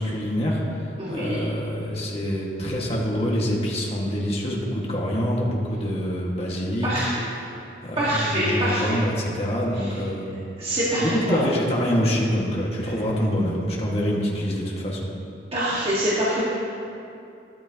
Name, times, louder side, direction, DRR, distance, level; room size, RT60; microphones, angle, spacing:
voice 1, 0.0-7.1 7.5-10.4 10.9-15.1, equal, 35° left, -3 dB, 1.8 m, -26 dB
voice 2, 1.0-1.5 6.8-7.3 8.0-9.0 9.7-10.0 10.6-11.4 15.5-16.5, equal, 30° right, -9 dB, 1.8 m, -25 dB
13.5 x 12.5 x 3.0 m, 2.6 s
head